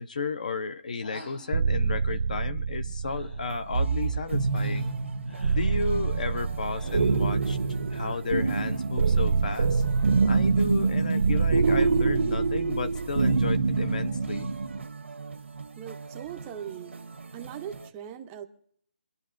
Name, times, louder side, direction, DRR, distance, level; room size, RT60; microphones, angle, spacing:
voice 1, 0.0-5.0 5.5-7.6 7.9-9.8 10.2-14.5, left 4 dB, 40° left, 0.6 m, -33 dB
sound 1, 1.0-1.5 3.1-3.6 4.5-4.9 5.3-5.7 6.8-7.3, left 1 dB, 65° left, 3.7 m, -46 dB
sound 2, 1.5-14.9, right 4 dB, 50° right, 0.7 m, -25 dB
sound 3, 3.4-17.9, right 4 dB, 85° right, 1.2 m, -44 dB
voice 2, 15.8-17.0 17.3-18.5, right 10 dB, 10° right, 0.5 m, -40 dB
27.0 x 11.0 x 2.5 m
hypercardioid pair, 175°, 7 cm